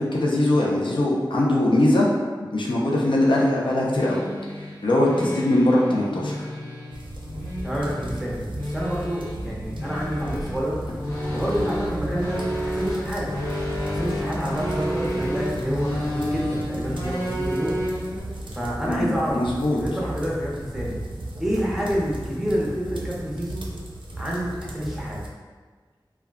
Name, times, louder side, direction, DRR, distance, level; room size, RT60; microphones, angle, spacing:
voice 1, 0.0-2.1 2.5-4.2 4.8-6.4 18.9-19.8, left 1 dB, 80° left, -3 dB, 0.5 m, -21 dB
sound 1, 3.0-18.2, equal, 35° left, 1.1 m, -31 dB
sound 2, 6.9-25.3, right 1 dB, 80° right, 0.4 m, -35 dB
voice 2, 7.6-10.8 11.3-13.3 13.8-17.8 18.5-19.4 19.7-21.0 21.4-23.6 24.2-25.2, equal, 5° right, -5 dB, 0.7 m, -28 dB
2.3 x 2.1 x 3.4 m, 1.5 s
wide cardioid pair, 50°, 8 cm